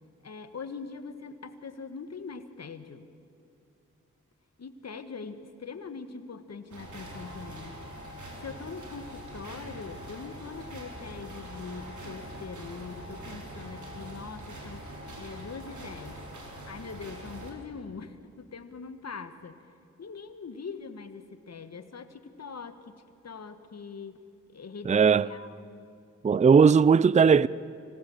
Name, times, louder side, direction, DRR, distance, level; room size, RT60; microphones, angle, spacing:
voice 1, 0.2-3.1 4.6-7.8 8.4-19.7 20.0-24.2 24.5-25.8, left 5 dB, 55° left, 1.6 m, -42 dB
sound 1, 6.7-17.5, right 1 dB, 65° right, 4.1 m, -43 dB
voice 2, 24.9-25.3 26.2-27.5, right 6 dB, 25° right, 0.5 m, -18 dB
25.0 x 18.0 x 7.3 m
supercardioid pair, 45°, 31 cm